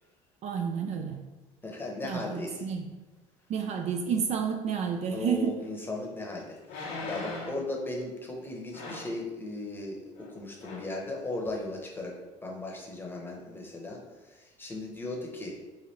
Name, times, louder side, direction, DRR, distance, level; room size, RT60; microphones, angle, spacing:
voice 1, 0.4-1.2 2.0-2.9 3.5-5.6, right 7 dB, 50° right, 4 dB, 0.4 m, -30 dB
voice 2, 1.6-2.6 5.1-12.1 12.4-15.5, left 2 dB, 15° left, -2 dB, 0.9 m, -37 dB
sound 1, 5.6-5.7 6.6-7.7 8.7-9.2 10.2-10.3 10.6-10.9 11.5-11.6, left 2 dB, 85° left, 0.8 m, -39 dB
3.2 x 2.5 x 4.2 m, 1.2 s
supercardioid pair, 100°, 15 cm